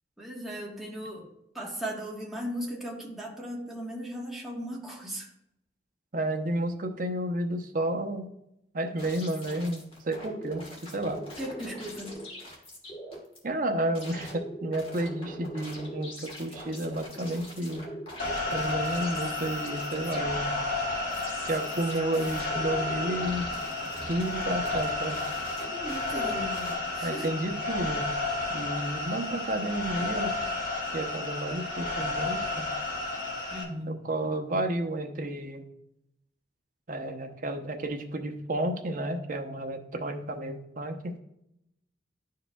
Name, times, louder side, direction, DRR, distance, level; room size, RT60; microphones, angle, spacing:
voice 1, 0.2-1.3 1.5-5.3 11.4-12.1 25.8-27.3 33.5-34.0, equal, ahead, -4 dB, 1.3 m, -37 dB
voice 2, 6.1-8.3 8.7-11.2 13.4-17.9 18.5-20.5 21.4-23.5 24.1-25.2 27.0-28.0 28.5-30.3 30.9-32.7 33.9-35.7 36.9-41.1, right 1 dB, 50° right, 4 dB, 0.8 m, -31 dB
sound 1, 9.0-13.4 13.9-26.8, equal, 30° left, 1.6 m, -42 dB
sound 2, 18.2-33.6, left 2 dB, 50° left, 1.6 m, -32 dB
11.0 x 4.7 x 2.3 m, 0.80 s
head